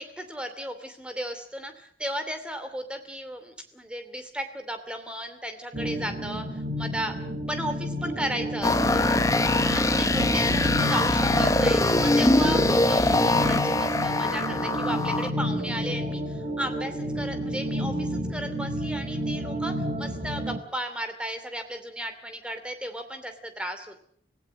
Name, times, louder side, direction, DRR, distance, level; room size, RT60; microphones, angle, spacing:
voice 1, 0.0-7.1 7.5-9.1 9.6-24.0, equal, 5° right, 7 dB, 2.6 m, -35 dB
sound 1, 5.7-20.6, equal, 40° right, 3.6 m, -31 dB
sound 2, 8.6-15.3, left 2 dB, 20° left, 1.1 m, -22 dB
25.5 x 17.0 x 7.6 m, 0.62 s
head